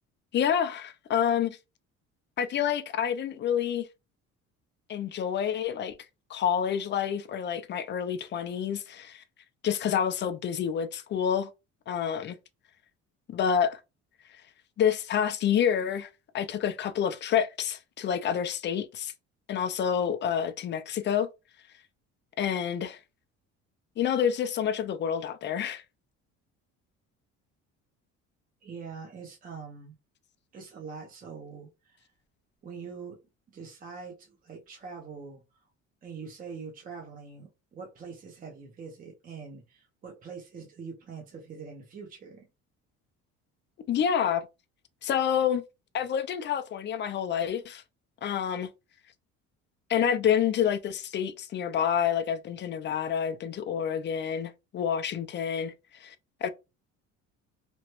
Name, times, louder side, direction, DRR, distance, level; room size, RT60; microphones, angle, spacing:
voice 1, 0.3-1.6 2.4-3.9 4.9-6.0 6.3-9.2 9.6-11.5 11.9-12.4 13.3-13.8 14.8-16.1 16.3-19.1 19.5-21.3 22.4-23.0 24.0-25.8 43.9-44.5 45.0-45.6 45.9-47.8 48.2-48.7 49.9-56.1 56.4-56.5, left 8 dB, 40° left, 0.4 m, -28 dB
voice 2, 28.6-29.9 30.5-32.1 32.6-33.2 33.5-35.7 36.0-42.5, right 5 dB, 30° right, 0.7 m, -44 dB
3.0 x 2.2 x 2.9 m
cardioid pair, 115°, 30 cm